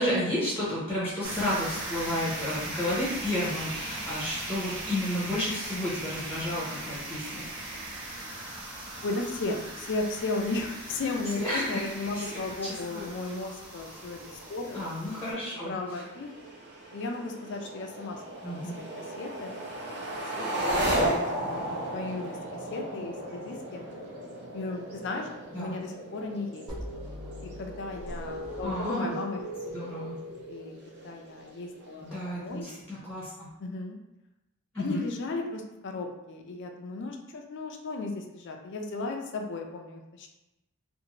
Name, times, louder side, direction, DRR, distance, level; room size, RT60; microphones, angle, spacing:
voice 1, 0.0-7.5 11.4-13.1 14.7-16.0 18.4-18.8 25.5-25.8 28.6-29.1 29.7-30.2 32.0-33.5 34.7-35.0, left 1 dB, 10° left, -8 dB, 0.7 m, -32 dB
sound 1, 1.2-15.3, right 1 dB, 85° right, 1.1 m, -39 dB
voice 2, 9.0-15.0 15.5-16.3 16.9-20.1 20.3-22.4 22.7-23.8 24.5-25.3 25.6-26.6 27.4-29.4 29.8-32.7 33.6-34.0 34.8-40.3, left 3 dB, 55° left, 3 dB, 0.4 m, -35 dB
sound 2, 13.8-32.6, right 1 dB, 50° right, 0.7 m, -36 dB
sound 3, 26.7-31.4, equal, 20° right, 1.0 m, -40 dB
2.6 x 2.5 x 2.9 m, 0.96 s
head